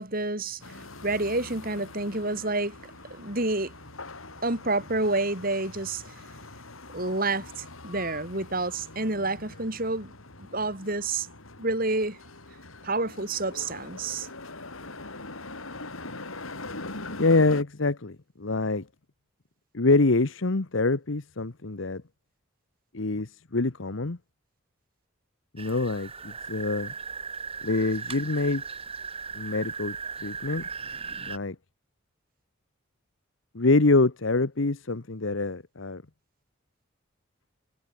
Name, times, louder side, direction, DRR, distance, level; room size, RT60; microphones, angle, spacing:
voice 1, 0.0-2.8 3.1-3.7 4.4-6.1 6.9-10.1 10.4-11.3 11.6-12.2 12.8-14.3, right 2 dB, 45° right, 6.1 m, -29 dB
sound 1, 0.6-17.6, left 2 dB, 90° left, 5.4 m, -43 dB
voice 2, 17.1-18.8 19.7-22.0 22.9-24.2 25.5-26.9 27.6-28.6 29.3-30.0 30.2-30.7 31.3-31.5 33.5-36.0, left 3 dB, 70° left, 1.1 m, -25 dB
sound 2, 25.6-31.4, right 5 dB, 30° right, 4.3 m, -37 dB
head